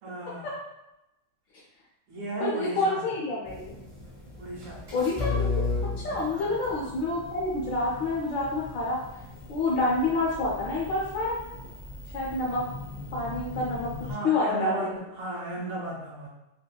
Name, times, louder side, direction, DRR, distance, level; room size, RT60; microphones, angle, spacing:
voice 1, 0.0-0.5 2.1-3.2 4.4-4.8 6.3-6.6 14.0-16.3, right 2 dB, 75° right, -3 dB, 1.2 m, -35 dB
voice 2, 2.4-3.8 4.9-5.5 6.0-9.0 9.5-11.4 12.1-12.6 13.1-13.9 14.2-15.0, left 2 dB, 75° left, -5 dB, 1.0 m, -28 dB
sound 1, 3.5-14.1, left 3 dB, 60° right, 0.4 m, -36 dB
3.4 x 2.1 x 2.2 m, 0.90 s
omnidirectional pair, 2.4 m